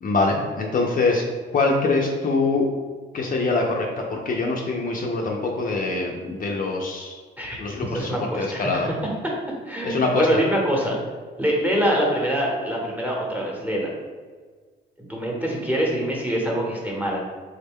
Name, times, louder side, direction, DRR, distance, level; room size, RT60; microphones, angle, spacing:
voice 1, 0.0-1.2 1.5-2.7 3.1-7.2 7.6-8.1 8.4-8.9 9.8-10.4, left 3 dB, 45° left, 0 dB, 0.5 m, -24 dB
voice 2, 7.9-8.9 9.7-11.0 11.4-13.9 15.0-17.2, equal, 10° right, -3 dB, 0.9 m, -24 dB
3.5 x 2.1 x 3.5 m, 1.5 s
cardioid pair, 90°, 20 cm